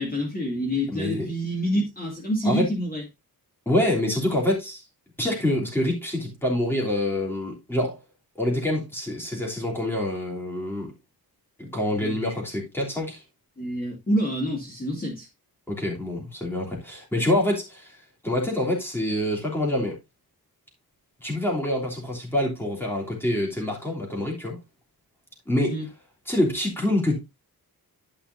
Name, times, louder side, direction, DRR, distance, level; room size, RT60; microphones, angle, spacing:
voice 1, 0.0-3.0 12.0-12.2 13.6-15.3 25.7-25.9, equal, 25° left, 2.3 m, -27 dB
voice 2, 0.9-1.3 2.4-2.7 3.6-4.8 5.2-8.0 8.4-10.9 11.6-13.2 15.7-17.9 18.2-20.0 21.2-24.6 25.5-25.8 26.3-27.2, left 1 dB, 5° left, 3.2 m, -26 dB
12.0 x 5.6 x 2.7 m
wide cardioid pair, 165°, 38 cm